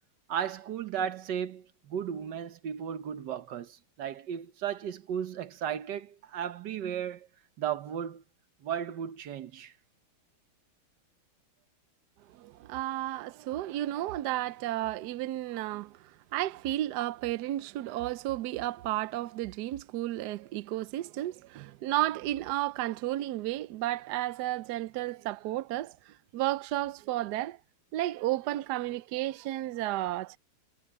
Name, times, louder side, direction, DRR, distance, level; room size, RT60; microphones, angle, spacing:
voice 1, 0.3-7.3 7.6-8.2 8.6-9.7, right 9 dB, 60° right, 1.5 m, -35 dB
voice 2, 12.3-27.6 27.9-30.4, right 15 dB, 80° right, 0.9 m, -33 dB
omnidirectional pair, 2.3 m